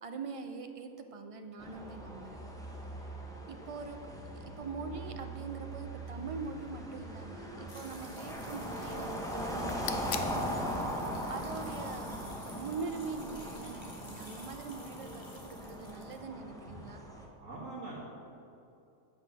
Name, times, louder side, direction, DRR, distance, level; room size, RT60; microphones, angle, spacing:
voice 1, 0.0-2.8 3.5-4.0 4.6-12.1 12.5-17.0, right 4 dB, 50° right, 6 dB, 0.4 m, -43 dB
sound 1, 1.6-17.3, equal, 5° left, 0.9 m, -40 dB
sound 2, 7.7-16.2, left 1 dB, 20° left, 1.6 m, -54 dB
sound 3, 9.6-14.6, left 8 dB, 60° left, 0.8 m, -47 dB
voice 2, 17.4-18.0, right 2 dB, 75° right, -5 dB, 1.9 m, -44 dB
8.6 x 8.0 x 6.0 m, 2.7 s
omnidirectional pair, 1.4 m